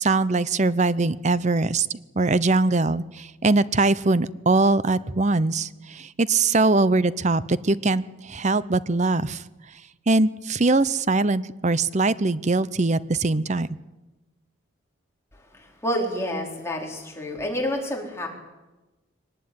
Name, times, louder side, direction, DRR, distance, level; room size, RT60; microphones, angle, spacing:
voice 1, 0.0-1.9 2.2-9.4 10.1-13.7, right 3 dB, 35° right, 17 dB, 0.7 m, -22 dB
voice 2, 15.5-18.3, equal, 15° left, 0 dB, 4.4 m, -29 dB
22.0 x 19.0 x 9.7 m, 1.1 s
head